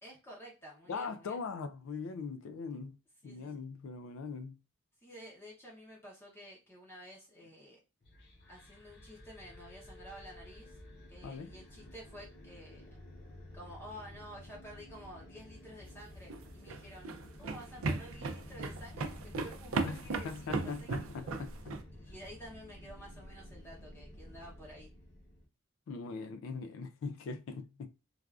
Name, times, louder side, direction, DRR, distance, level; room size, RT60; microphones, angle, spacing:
voice 1, 0.0-1.4 3.2-3.6 5.0-7.8 8.5-10.8 11.1-12.8 13.5-17.1 17.3-21.3 21.9-24.9, equal, 10° left, 0.6 m, -51 dB
voice 2, 0.9-3.0 3.2-4.6 11.2-11.5 19.8-21.5 25.9-27.9, left 4 dB, 70° left, 0.3 m, -41 dB
sound 1, 8.0-25.4, left 1 dB, 50° left, 0.8 m, -52 dB
sound 2, 16.2-21.8, right 3 dB, 70° right, 0.4 m, -36 dB
3.2 x 2.3 x 2.3 m
head